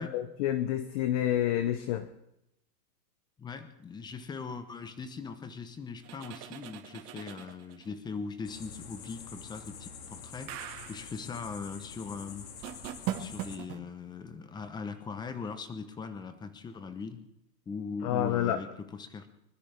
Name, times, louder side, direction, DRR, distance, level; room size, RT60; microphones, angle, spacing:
voice 1, 0.0-2.1 18.0-18.6, left 11 dB, 25° left, 11 dB, 0.5 m, -29 dB
voice 2, 3.4-12.5 13.2-17.2 17.7-19.3, left 5 dB, 10° left, 10 dB, 0.9 m, -40 dB
sound 1, 6.0-7.9 10.5-11.1 12.6-13.8, right 11 dB, 30° right, 1.3 m, -39 dB
sound 2, 8.4-13.6, left 6 dB, 65° left, 2.5 m, -46 dB
24.5 x 13.0 x 3.4 m, 0.84 s
hypercardioid pair, 140°, 50 cm